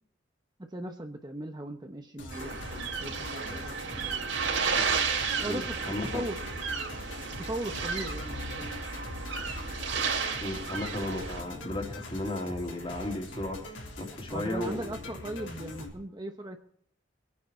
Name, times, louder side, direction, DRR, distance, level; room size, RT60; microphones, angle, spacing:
voice 1, 0.6-4.2 5.4-6.4 7.4-8.8 14.3-16.6, right 1 dB, 20° right, 4 dB, 1.0 m, -38 dB
sound 1, 2.2-15.9, left 2 dB, 75° left, 3.6 m, -43 dB
sound 2, 2.3-11.4, right 5 dB, 75° right, 3.4 m, -33 dB
voice 2, 5.5-6.2 10.4-13.6 14.0-14.9, left 1 dB, 30° left, 2 dB, 2.7 m, -34 dB
23.5 x 9.5 x 4.4 m, 0.68 s
head